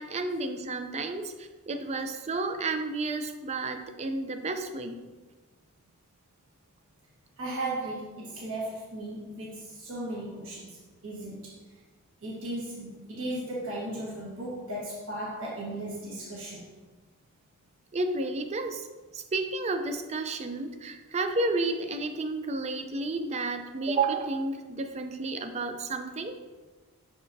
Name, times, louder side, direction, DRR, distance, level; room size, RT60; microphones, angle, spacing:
voice 1, 0.0-5.0 17.9-18.9 19.1-26.4, right 3 dB, 30° right, 7 dB, 0.4 m, -31 dB
voice 2, 7.4-11.6 12.2-16.7, right 1 dB, 60° right, -6 dB, 1.4 m, -36 dB
6.2 x 6.0 x 2.6 m, 1.2 s
head